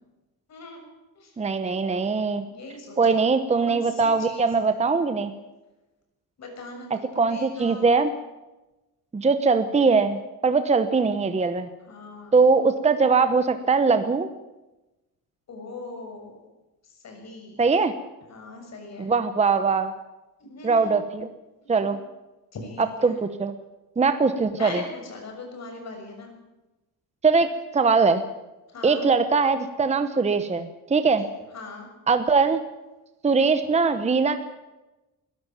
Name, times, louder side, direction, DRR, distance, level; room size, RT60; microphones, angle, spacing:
voice 1, 0.5-0.8 1.1-1.4 2.5-3.2 3.5-5.0 6.4-7.9 11.9-12.4 15.5-16.4 16.8-17.6 18.3-19.1 20.4-21.0 21.6-22.0 22.5-23.2 24.5-26.3 28.7-29.1 31.2-31.3 31.5-31.9, left 3 dB, 50° left, 3 dB, 6.7 m, -40 dB
voice 2, 1.4-2.4 3.0-5.3 7.2-8.1 9.1-11.7 12.3-14.3 17.6-17.9 19.0-19.9 20.6-21.3 21.7-22.0 23.0-23.5 24.0-24.8 27.2-28.2 28.8-31.3 32.1-32.6 33.2-34.4, right 4 dB, 20° right, 10 dB, 0.9 m, -21 dB
21.0 x 14.0 x 9.1 m, 1.0 s
cardioid pair, 150°, 35 cm